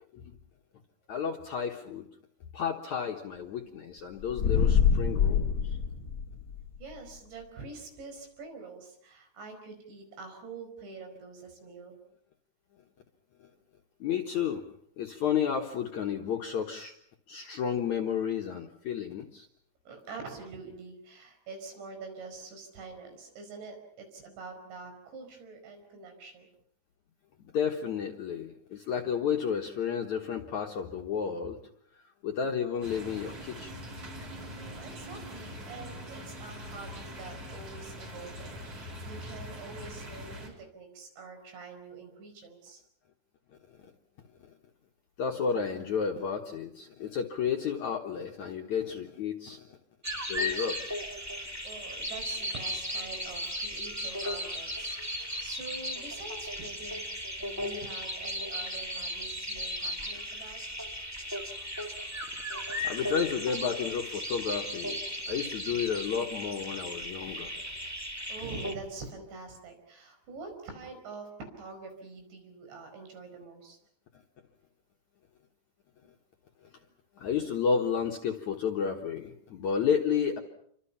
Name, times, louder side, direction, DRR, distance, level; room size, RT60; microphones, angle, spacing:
voice 1, 1.1-2.1 2.5-5.8 14.0-14.6 15.0-16.9 17.3-19.5 27.5-31.6 32.2-33.7 45.2-49.7 50.3-51.0 62.8-65.0 65.3-67.6 77.2-80.4, left 7 dB, 65° left, 1 dB, 2.0 m, -31 dB
sound 1, 4.2-6.7, left 7 dB, 85° left, 1.1 m, -25 dB
voice 2, 6.8-12.0 19.9-26.5 34.6-42.8 51.3-60.6 68.3-71.3 71.6-73.8, right 4 dB, 80° right, 5 dB, 7.3 m, -45 dB
sound 2, 32.8-40.5, equal, 35° right, 5.4 m, -43 dB
sound 3, 50.0-68.7, equal, 10° right, 1.1 m, -36 dB
29.0 x 24.5 x 5.8 m, 0.68 s
omnidirectional pair, 5.1 m